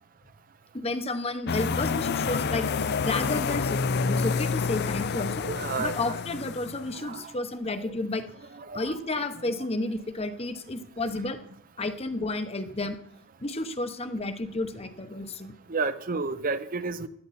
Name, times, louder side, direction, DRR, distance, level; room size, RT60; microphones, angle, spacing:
voice 1, 0.7-2.7 3.0-5.5 5.8-8.2 8.7-11.4 11.8-13.0 13.4-15.5, left 2 dB, 30° left, 9 dB, 0.9 m, -31 dB
sound 1, 1.5-7.0, left 5 dB, 50° left, 0.4 m, -28 dB
voice 2, 5.4-6.0 6.9-7.3 7.8-7.9 8.5-9.0 15.7-17.1, right 4 dB, 40° right, 12 dB, 0.6 m, -31 dB
17.0 x 12.0 x 4.2 m, 0.75 s
head